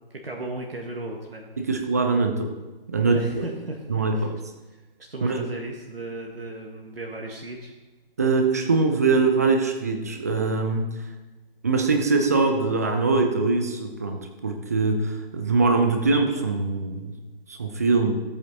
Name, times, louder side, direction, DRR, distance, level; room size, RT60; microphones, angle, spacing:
voice 1, 0.0-1.4 3.0-4.3 5.1-7.7, right 2 dB, 70° right, 0 dB, 1.7 m, -36 dB
voice 2, 1.6-2.5 2.9-3.5 3.9-4.3 5.2-5.4 8.2-10.9 11.6-17.1 17.5-18.2, right 3 dB, 15° right, 4 dB, 0.6 m, -22 dB
13.5 x 8.5 x 4.2 m, 1.2 s
figure-of-eight pair, 150°, 30 cm